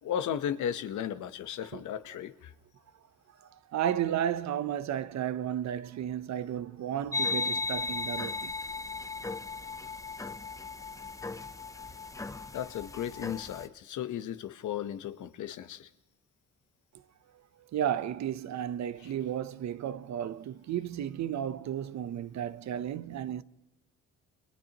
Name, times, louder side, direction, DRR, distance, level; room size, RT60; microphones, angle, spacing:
voice 1, 0.0-2.5 12.5-15.9, left 9 dB, 75° left, 1.1 m, -35 dB
voice 2, 3.3-8.5 17.3-23.4, right 10 dB, 65° right, 0.8 m, -33 dB
sound 1, 7.1-13.7, left 3 dB, 10° left, 0.7 m, -36 dB
30.0 x 30.0 x 3.0 m
cardioid pair, 90°, 30 cm